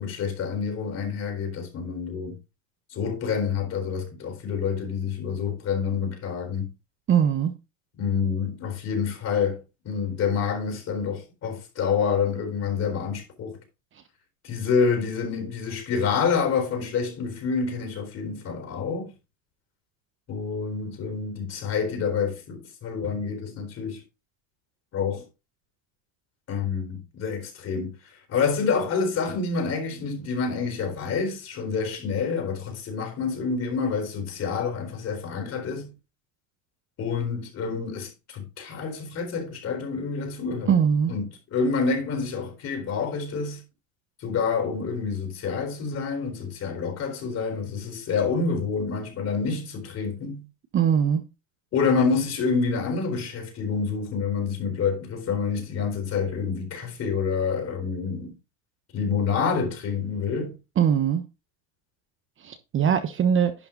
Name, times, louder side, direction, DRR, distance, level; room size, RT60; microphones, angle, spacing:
voice 1, 0.0-2.4 2.9-6.7 8.0-13.6 14.4-19.1 20.3-24.0 24.9-25.2 26.5-27.9 28.3-35.9 37.0-40.7 41.1-41.3 41.5-43.6 44.2-50.5 51.7-58.3 58.9-60.6, left 5 dB, 40° left, 4.2 m, -27 dB
voice 2, 7.1-7.5 40.7-41.1 50.7-51.2 60.8-61.2 62.4-63.5, right 8 dB, 30° right, 1.1 m, -21 dB
11.0 x 5.8 x 3.8 m
supercardioid pair, 110°, 40 cm